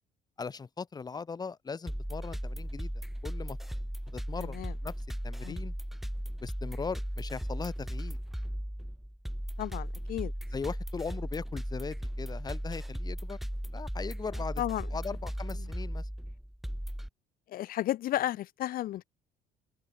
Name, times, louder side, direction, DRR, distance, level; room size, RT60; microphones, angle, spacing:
voice 1, 0.4-2.9 3.2-3.6 4.1-4.9 5.2-5.7 6.4-8.2 10.5-13.4 13.7-14.6 14.9-16.1, left 5 dB, 25° left, 1.8 m, -39 dB
sound 1, 1.9-17.1, equal, ahead, 3.5 m, -37 dB
voice 2, 4.4-4.7 5.4-5.6 9.6-10.3 14.6-14.9 17.5-19.0, left 14 dB, 60° left, 1.1 m, -33 dB
open air
cardioid pair, 125°, 17 cm